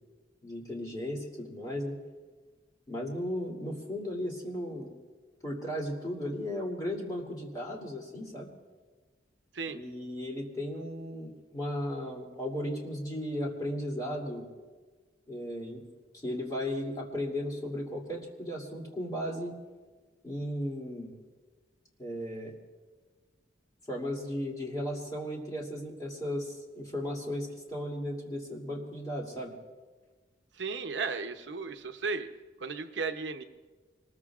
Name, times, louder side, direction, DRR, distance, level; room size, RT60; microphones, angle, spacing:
voice 1, 0.4-2.0 2.9-4.9 5.4-8.5 9.7-14.5 15.3-15.8 16.1-19.6 20.2-21.2 22.0-22.5 23.9-29.5, equal, 20° left, -3 dB, 2.7 m, -35 dB
voice 2, 30.5-32.3 32.6-33.4, right 4 dB, 75° right, 7 dB, 0.8 m, -35 dB
25.5 x 20.5 x 2.4 m, 1.4 s
head